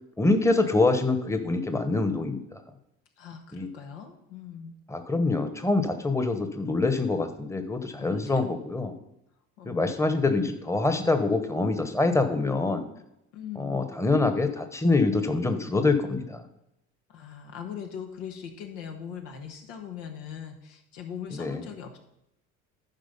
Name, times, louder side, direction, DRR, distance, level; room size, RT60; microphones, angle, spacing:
voice 1, 0.2-2.6 3.5-3.7 4.9-8.9 9.6-12.8 13.6-16.4 21.3-21.6, left 3 dB, 10° left, 8 dB, 1.1 m, -25 dB
voice 2, 3.2-4.7 8.0-8.4 9.6-9.8 13.3-13.8 17.1-22.0, left 8 dB, 85° left, 4 dB, 1.5 m, -40 dB
11.5 x 4.7 x 5.4 m, 0.84 s
hypercardioid pair, 70°, 36 cm